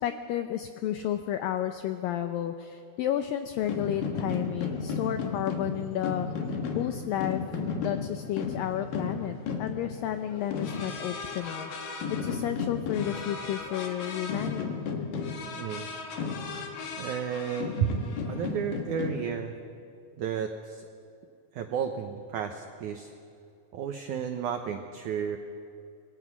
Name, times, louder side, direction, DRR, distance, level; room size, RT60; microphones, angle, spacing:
voice 1, 0.0-6.3 6.8-7.4 7.8-14.8, left 11 dB, 85° left, 8 dB, 2.0 m, -32 dB
sound 1, 3.6-19.3, left 5 dB, 60° left, 3.0 m, -34 dB
voice 2, 15.6-15.9 17.0-19.5 20.2-20.9 21.5-23.1 23.7-25.4, right 7 dB, 90° right, 5 dB, 1.7 m, -32 dB
26.5 x 20.5 x 6.1 m, 2.5 s
omnidirectional pair, 4.9 m